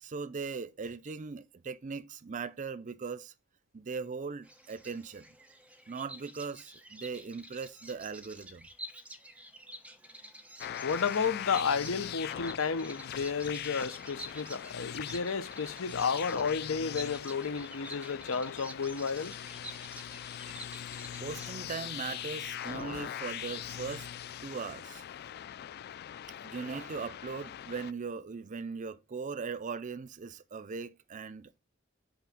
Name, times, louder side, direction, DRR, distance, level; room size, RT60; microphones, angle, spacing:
voice 1, 0.0-3.3 3.7-5.3 5.9-8.7 21.2-24.1 24.4-25.0 26.4-31.6, right 5 dB, 40° right, 0.5 m, -39 dB
Bird vocalization bird call bird song, 4.4-24.0, right 1 dB, 5° right, 1.1 m, -50 dB
sound 1, 10.6-27.9, left 10 dB, 50° left, 0.3 m, -41 dB
voice 2, 10.8-19.3, left 5 dB, 85° left, 0.8 m, -32 dB
5.9 x 5.5 x 7.0 m
head